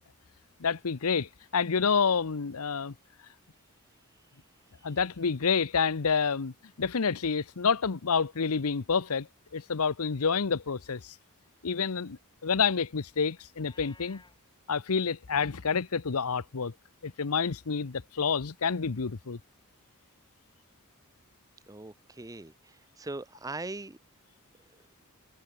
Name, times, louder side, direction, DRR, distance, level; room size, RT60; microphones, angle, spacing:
voice 1, 0.6-2.9 4.8-9.3 9.5-11.1 11.6-14.2 14.7-16.7 17.0-19.4, left 5 dB, 75° left, 0.8 m, -28 dB
Livestock farm animals working animals, 13.5-14.4, left 3 dB, 20° left, 6.1 m, -57 dB
voice 2, 21.7-24.0 24.7-24.9, right 2 dB, 15° right, 0.8 m, -41 dB
head